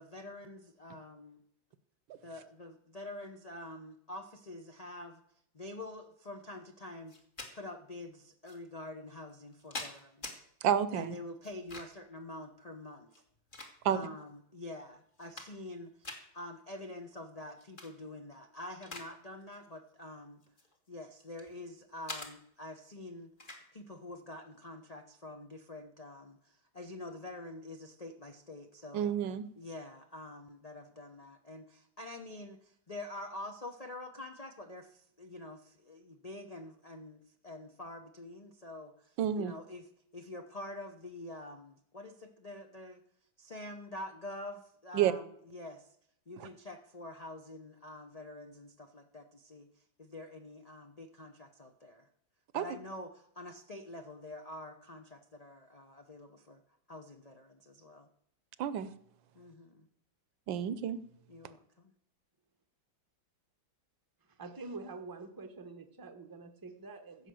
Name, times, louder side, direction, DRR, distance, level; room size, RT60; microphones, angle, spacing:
voice 1, 0.0-1.4 2.2-5.2 5.5-7.1 7.5-10.4 10.9-13.1 13.8-20.4 20.9-23.3 23.7-29.1 29.6-39.9 40.1-43.0 43.4-46.0 46.3-52.1 52.5-56.6 56.9-58.1 59.3-59.9 61.3-61.9, left 1 dB, 50° left, 3 dB, 0.4 m, -46 dB
sound 1, 7.1-7.5 8.4-8.6 9.3-10.4 11.4-12.1 13.0-14.1 14.7-14.8 15.1-15.7 16.0-16.2 17.6-17.9 18.3-19.1 19.4-19.7 20.4-21.5 22.1-22.3 23.4-23.6, left 2 dB, 25° left, 1.8 m, -45 dB
voice 2, 10.6-11.1 13.8-14.0 28.9-29.4 39.2-39.5 44.9-45.1 52.5-52.6 58.6-58.9 60.5-61.0, right 9 dB, 75° right, 15 dB, 1.4 m, -29 dB
voice 3, 64.4-67.2, right 3 dB, 15° right, 6 dB, 0.7 m, -46 dB
15.0 x 5.9 x 7.6 m, 0.71 s
omnidirectional pair, 2.1 m